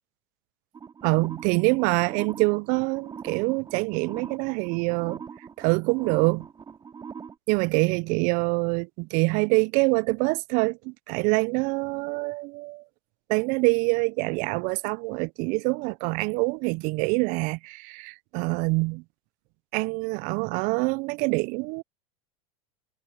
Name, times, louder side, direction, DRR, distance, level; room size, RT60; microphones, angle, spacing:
sound 1, 0.7-7.3, right 6 dB, 25° right, 2.6 m, -42 dB
voice 1, 1.0-5.2 5.6-6.5 7.5-12.8 13.3-19.0 19.7-21.8, right 28 dB, 50° right, 0.7 m, -25 dB
hypercardioid pair, 90°, 17 cm